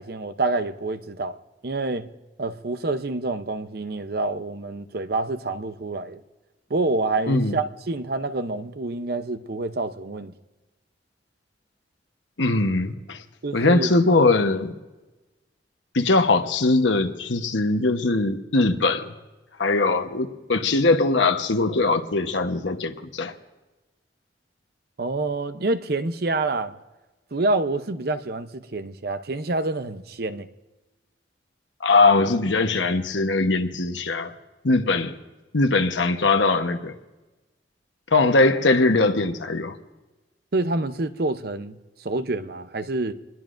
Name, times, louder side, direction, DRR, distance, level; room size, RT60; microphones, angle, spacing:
voice 1, 0.0-1.4 1.6-2.1 2.4-6.2 6.7-10.3 13.4-13.9 25.0-26.8 27.3-30.5 40.5-43.1, right 2 dB, 55° right, 0.7 m, -27 dB
voice 2, 12.4-13.2 13.5-14.7 15.9-19.1 19.6-23.3 31.8-34.3 34.6-35.1 35.5-37.0 38.1-39.7, left 3 dB, 90° left, 1.1 m, -21 dB
27.0 x 21.0 x 2.6 m
head